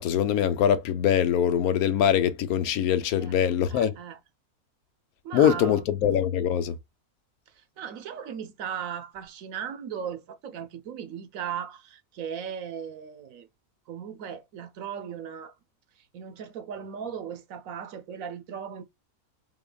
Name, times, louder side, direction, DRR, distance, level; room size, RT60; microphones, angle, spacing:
voice 1, 0.0-4.0 5.3-6.7, left 9 dB, 75° left, 1.1 m, -23 dB
voice 2, 3.2-4.2 5.2-5.9 7.6-13.5 13.9-15.5 16.1-18.8, right 8 dB, 70° right, 1.0 m, -37 dB
3.8 x 3.6 x 2.2 m
omnidirectional pair, 1.6 m